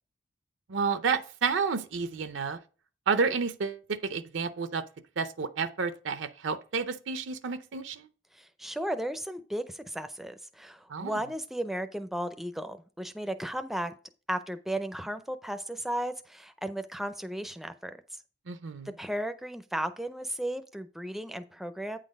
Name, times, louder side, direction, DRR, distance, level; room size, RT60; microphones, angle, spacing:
voice 1, 0.7-2.6 3.1-4.8 5.2-8.1 10.9-11.2 18.5-18.9, right 5 dB, 75° right, 0.6 m, -30 dB
voice 2, 8.3-13.9 14.3-18.0 19.0-22.0, right 1 dB, ahead, 0.4 m, -35 dB
8.8 x 4.0 x 5.2 m
head